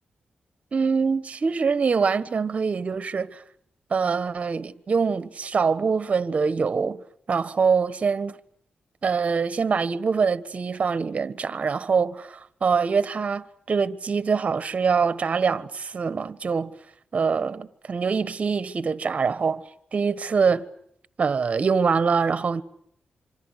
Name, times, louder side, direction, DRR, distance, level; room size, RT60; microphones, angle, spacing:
voice 1, 0.7-3.4 3.9-7.0 7.3-8.4 9.0-16.7 17.1-19.6 19.9-20.6 21.2-22.6, right 5 dB, 45° right, 1.3 m, -24 dB
26.5 x 25.5 x 8.3 m
wide cardioid pair, 125°, 3 cm